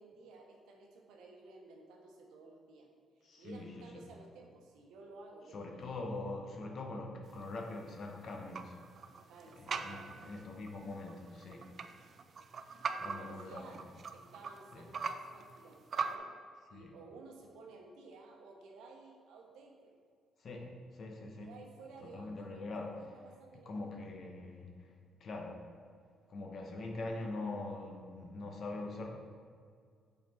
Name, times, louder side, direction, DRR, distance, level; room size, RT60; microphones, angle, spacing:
voice 1, 0.0-2.9 3.2-5.9 9.3-10.4 12.9-13.8 14.1-16.3 16.7-19.9 21.4-24.1, right 3 dB, 90° right, 1 dB, 0.9 m, -54 dB
voice 2, 3.2-4.1 5.5-8.8 9.6-11.7 13.0-13.8 14.7-14.8 16.7-16.9 20.4-21.5 22.0-23.0 23.6-24.9 25.2-25.6 26.3-29.1, left 2 dB, 55° left, 1 dB, 1.0 m, -43 dB
sound 1, 7.3-16.2, right 5 dB, 50° right, 0.4 m, -43 dB
6.6 x 4.2 x 4.2 m, 2.1 s
cardioid pair, 90°, 0 cm